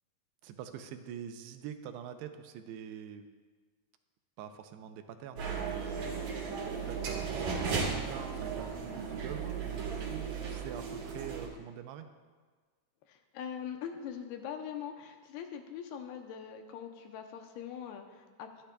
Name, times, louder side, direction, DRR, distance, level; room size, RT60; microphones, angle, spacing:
voice 1, 0.4-3.3 4.4-6.3 6.9-12.1, right 9 dB, 80° right, 7 dB, 2.7 m, -45 dB
sound 1, 5.4-11.5, right 5 dB, 55° right, 2.8 m, -36 dB
voice 2, 13.1-18.6, left 8 dB, 80° left, 5 dB, 2.6 m, -42 dB
23.0 x 10.0 x 2.3 m, 1.5 s
omnidirectional pair, 4.8 m